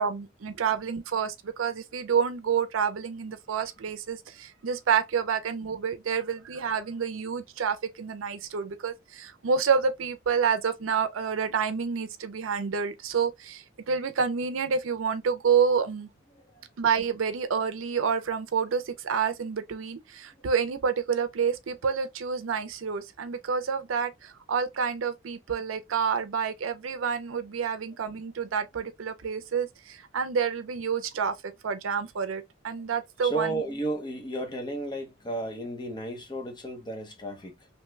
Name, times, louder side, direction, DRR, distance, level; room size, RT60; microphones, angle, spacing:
voice 1, 0.0-16.1 16.8-33.6, right 6 dB, 80° right, 0.5 m, -28 dB
voice 2, 16.3-16.7 33.2-37.7, right 2 dB, 20° left, 0.8 m, -33 dB
3.0 x 2.2 x 3.2 m
head